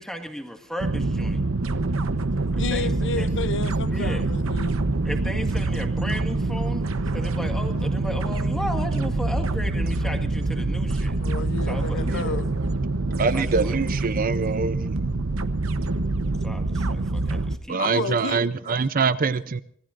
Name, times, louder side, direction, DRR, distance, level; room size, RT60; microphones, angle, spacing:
voice 1, 0.0-1.4 2.7-3.3 3.9-4.3 5.0-6.9 7.1-11.2 11.7-12.4 13.3-13.8 16.4-18.0, equal, 5° left, 1.9 m, -35 dB
sound 1, 0.8-17.6, right 2 dB, 75° right, 1.0 m, -25 dB
voice 2, 2.6-4.8 11.2-12.5 17.8-18.8, left 4 dB, 60° left, 0.8 m, -31 dB
voice 3, 13.2-14.9 17.7-19.6, right 4 dB, 45° right, 0.6 m, -24 dB
26.0 x 18.5 x 2.6 m
head